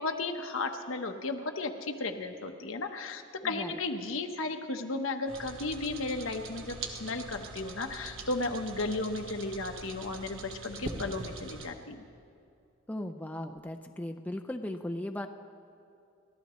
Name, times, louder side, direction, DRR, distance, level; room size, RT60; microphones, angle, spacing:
voice 1, 0.0-12.0, left 3 dB, 65° left, 5 dB, 1.1 m, -34 dB
voice 2, 3.4-3.8 12.9-15.3, left 1 dB, 5° left, 4 dB, 0.5 m, -37 dB
sound 1, 5.3-11.7, right 4 dB, 65° right, 1.5 m, -44 dB
sound 2, 10.8-11.4 13.3-13.6, equal, 85° right, 1.6 m, -40 dB
30.0 x 14.0 x 3.2 m, 2.5 s
head